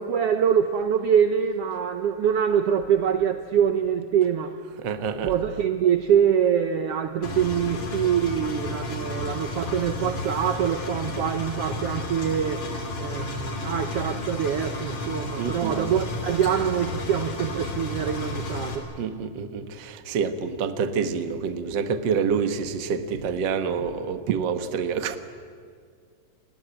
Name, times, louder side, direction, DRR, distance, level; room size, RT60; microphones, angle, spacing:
voice 1, 0.0-4.6 5.3-12.7 13.0-18.9 24.3-24.4, right 8 dB, 65° right, 8 dB, 1.7 m, -24 dB
voice 2, 4.8-5.3 15.4-15.9 19.0-25.2, right 6 dB, 50° right, 9 dB, 1.6 m, -27 dB
Engine, 7.2-18.8, left 2 dB, 60° left, 4.1 m, -32 dB
28.5 x 20.0 x 8.9 m, 2.1 s
omnidirectional pair, 3.3 m